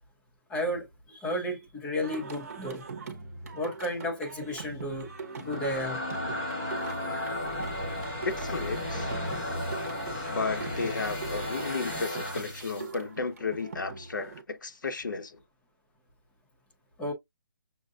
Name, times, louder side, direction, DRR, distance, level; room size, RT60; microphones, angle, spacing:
voice 1, 0.5-2.8 3.5-5.1 5.4-6.0 17.0-17.1, left 1 dB, 5° left, 0.4 m, -33 dB
Singing, 2.0-14.4, right 4 dB, 45° right, 1.0 m, -43 dB
sound 1, 5.2-12.9, left 1 dB, 25° left, 1.8 m, -34 dB
voice 2, 8.2-9.1 10.3-15.4, left 4 dB, 70° left, 1.0 m, -33 dB
6.3 x 2.5 x 2.3 m
hypercardioid pair, 175°, 11 cm